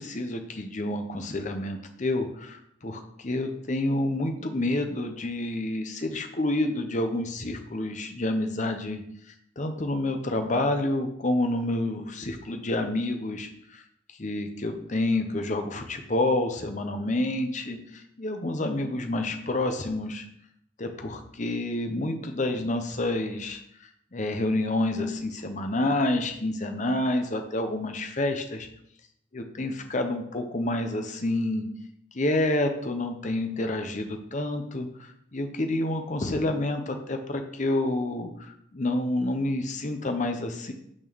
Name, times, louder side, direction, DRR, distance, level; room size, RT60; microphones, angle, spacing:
voice 1, 0.0-9.0 9.6-13.8 14.2-20.2 20.8-23.6 24.1-28.7 29.3-31.6 32.1-40.7, left 1 dB, 40° left, 6 dB, 0.8 m, -28 dB
6.1 x 4.5 x 6.1 m, 0.72 s
head